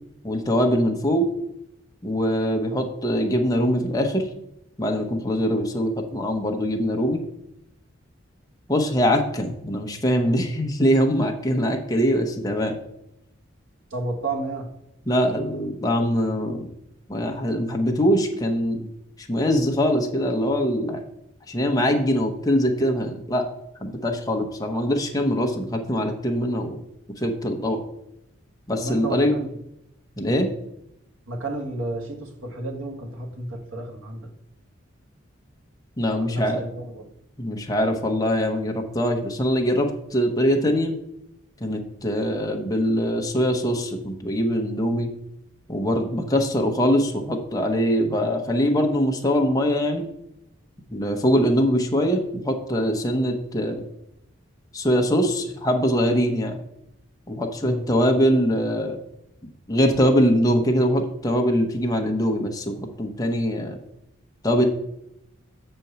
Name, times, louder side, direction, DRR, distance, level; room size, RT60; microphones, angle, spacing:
voice 1, 0.2-1.3 2.0-4.3 4.8-7.2 8.7-12.8 15.1-16.7 17.1-18.9 19.2-21.0 21.5-23.4 23.8-26.8 27.2-27.8 28.7-29.3 30.2-30.5 36.0-36.6 37.4-41.0 41.6-45.1 45.7-50.1 50.9-53.8 54.7-56.6 57.3-59.0 59.7-63.8 64.4-64.6, equal, 15° left, 2 dB, 0.9 m, -23 dB
voice 2, 13.9-14.7 28.7-29.5 31.3-34.3 36.2-37.0 57.6-57.9, right 2 dB, 75° right, 2 dB, 1.6 m, -31 dB
6.8 x 4.4 x 6.8 m, 0.80 s
head